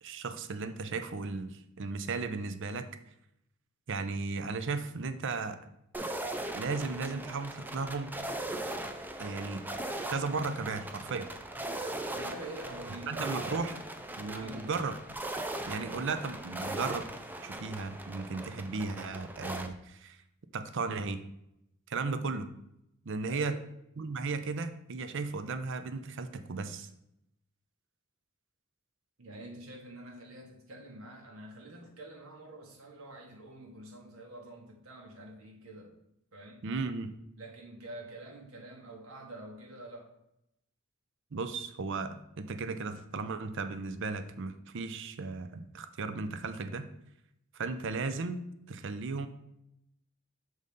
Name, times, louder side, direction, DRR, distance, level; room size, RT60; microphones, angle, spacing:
voice 1, 0.0-2.9 3.9-5.6 6.5-8.1 9.2-9.7 10.1-11.3 13.1-13.7 14.2-15.0 15.7-17.1 17.4-20.2 20.5-21.2 21.9-22.5 23.1-23.5 24.0-26.9 36.6-37.1 41.3-46.9 47.5-49.3, right 4 dB, 60° right, 10 dB, 0.6 m, -35 dB
sound 1, 5.9-19.7, right 1 dB, 10° right, 0.5 m, -39 dB
voice 2, 12.1-13.8 14.3-14.8 23.3-23.6 29.2-35.9 36.3-36.6 37.4-40.1, right 2 dB, 80° right, 1 dB, 1.3 m, -47 dB
6.4 x 4.0 x 5.3 m, 0.80 s
head